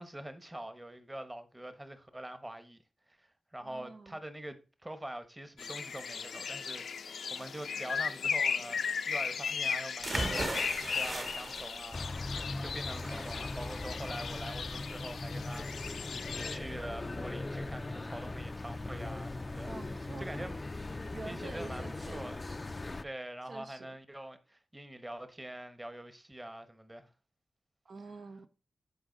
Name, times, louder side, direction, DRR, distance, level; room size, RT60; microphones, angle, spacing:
voice 1, 0.0-2.8 3.1-19.7 20.2-20.6 21.3-22.5 23.0-27.1, right 1 dB, 15° right, 1.2 m, -45 dB
voice 2, 3.6-4.2 19.6-20.5 21.1-22.3 23.5-24.0 27.8-28.5, right 3 dB, 55° right, 0.7 m, -47 dB
sound 1, 5.6-16.6, left 6 dB, 85° left, 0.7 m, -36 dB
sound 2, 10.0-17.7, right 2 dB, 40° right, 1.7 m, -40 dB
sound 3, 11.9-23.0, left 2 dB, 30° left, 0.5 m, -40 dB
13.5 x 5.1 x 4.0 m
wide cardioid pair, 100°, 0 cm